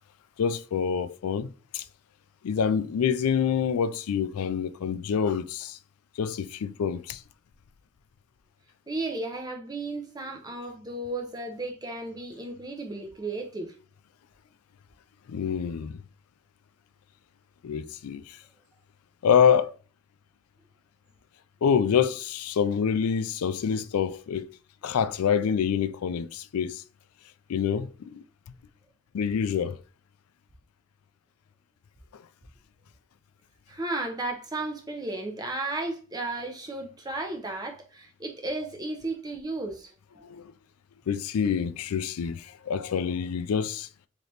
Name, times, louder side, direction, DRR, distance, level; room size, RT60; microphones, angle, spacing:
voice 1, 0.4-1.8 2.4-5.8 6.2-7.2 15.3-16.0 17.6-18.4 19.2-19.7 21.6-24.5 24.8-26.8 27.5-28.2 29.1-29.8 40.3-40.5 41.1-43.9, left 7 dB, 90° left, 0.4 m, -26 dB
voice 2, 8.9-13.7 33.7-39.9, right 2 dB, 20° right, 0.7 m, -34 dB
4.0 x 3.0 x 3.2 m
head